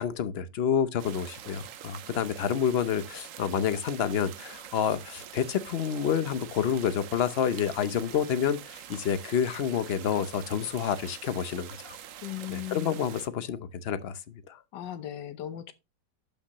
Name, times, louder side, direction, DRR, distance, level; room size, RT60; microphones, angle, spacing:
voice 1, 0.0-12.0 12.5-14.6, left 8 dB, 55° left, 0.7 m, -29 dB
sound 1, 1.0-13.3, right 10 dB, 60° right, 0.9 m, -45 dB
voice 2, 12.2-13.0 14.7-15.7, left 12 dB, 85° left, 1.5 m, -37 dB
11.5 x 5.4 x 3.0 m
omnidirectional pair, 1.8 m